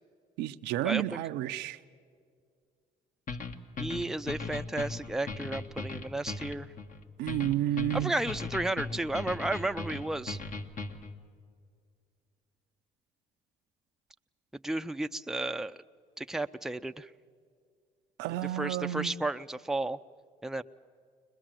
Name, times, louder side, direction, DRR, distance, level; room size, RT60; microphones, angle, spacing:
voice 1, 0.4-1.8 7.2-8.1 18.2-19.1, right 13 dB, 85° right, 10 dB, 0.6 m, -31 dB
sound 1, 3.3-11.2, left 4 dB, 45° left, 1.5 m, -38 dB
voice 2, 3.8-6.7 7.9-10.4 14.6-15.8 16.2-17.1 18.5-20.0 20.4-20.6, right 2 dB, 5° right, 8 dB, 0.6 m, -33 dB
22.5 x 21.0 x 7.6 m, 2.2 s
supercardioid pair, 70°, 18 cm